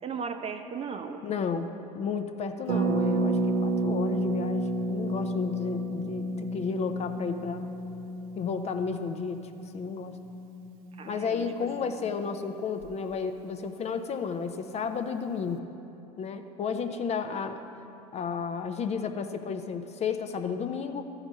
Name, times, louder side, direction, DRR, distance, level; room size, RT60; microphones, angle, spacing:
voice 1, 0.0-1.2 10.9-12.0 17.2-17.4, right 5 dB, 30° right, 7 dB, 0.7 m, -37 dB
voice 2, 1.2-7.7 8.4-10.2 11.1-15.6 16.2-17.6 18.1-21.0, left 6 dB, 35° left, 7 dB, 0.5 m, -32 dB
Harp, 2.7-12.3 12.5-12.6 12.8-13.1, right 2 dB, 65° right, 0.6 m, -31 dB
13.0 x 4.9 x 5.3 m, 2.9 s
hypercardioid pair, 70°, 19 cm